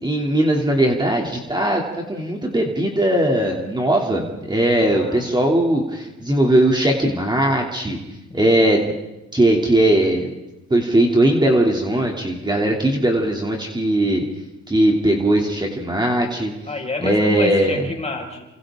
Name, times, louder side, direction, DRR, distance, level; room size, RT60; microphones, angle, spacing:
voice 1, 0.0-1.8 2.1-8.0 8.3-8.9 9.3-10.3 10.7-14.2 14.7-16.5 17.0-17.8, right 1 dB, 15° right, 0 dB, 3.1 m, -19 dB
voice 2, 4.8-5.3 8.3-8.5 16.6-18.5, left 3 dB, 20° left, 1 dB, 5.8 m, -29 dB
29.5 x 26.0 x 3.8 m, 0.96 s
cardioid pair, 90°, 30 cm